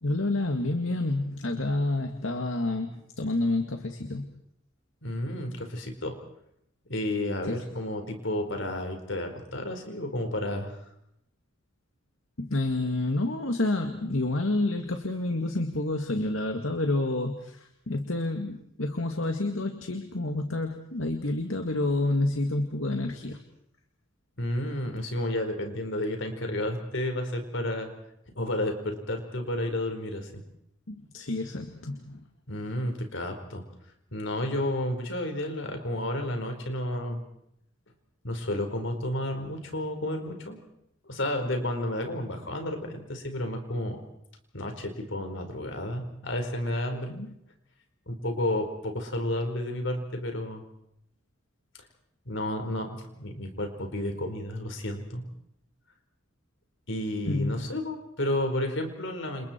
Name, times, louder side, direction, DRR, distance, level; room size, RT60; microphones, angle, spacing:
voice 1, 0.0-4.3 7.4-7.5 12.4-23.4 30.9-32.2 47.0-47.3 57.2-57.7, left 2 dB, 85° left, 4 dB, 2.1 m, -29 dB
voice 2, 5.0-6.1 6.9-10.7 24.4-27.9 28.3-30.3 32.5-33.6 34.1-37.2 38.2-40.6 41.1-44.0 44.5-47.1 48.1-50.6 52.2-55.2 56.9-59.5, left 1 dB, 70° left, 5 dB, 4.8 m, -31 dB
29.5 x 28.5 x 4.6 m, 0.76 s
head